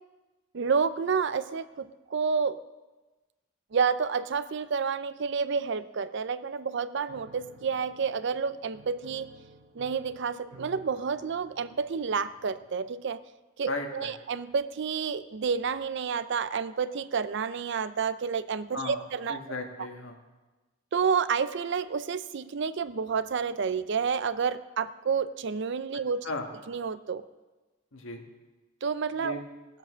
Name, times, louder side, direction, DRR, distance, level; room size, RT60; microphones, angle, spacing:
voice 1, 0.5-2.6 3.7-9.3 9.8-13.2 13.6-19.4 20.9-26.3 26.7-27.2 28.8-29.4, right 6 dB, 60° right, 14 dB, 0.5 m, -29 dB
Piano, 7.1-13.0, right 2 dB, 80° right, 1.2 m, -54 dB
voice 2, 13.7-14.1 18.7-19.0 19.3-20.2 26.2-26.5 27.9-28.2 29.1-29.4, left 2 dB, 70° left, 3 dB, 1.7 m, -35 dB
17.5 x 7.4 x 6.2 m, 1.2 s
head